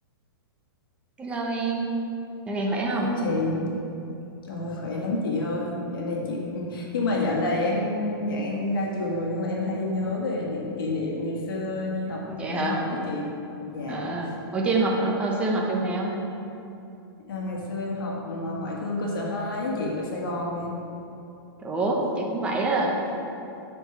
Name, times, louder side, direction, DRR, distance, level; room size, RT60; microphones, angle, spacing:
voice 1, 1.2-1.9 2.5-3.1 12.3-12.8 13.9-16.2 21.6-23.0, right 2 dB, 10° right, -1 dB, 0.8 m, -26 dB
voice 2, 2.9-3.7 4.5-13.2 13.7-14.1 17.3-20.7, left 2 dB, 65° left, -2 dB, 1.9 m, -29 dB
8.7 x 4.7 x 5.9 m, 2.8 s
hypercardioid pair, 165°, 13 cm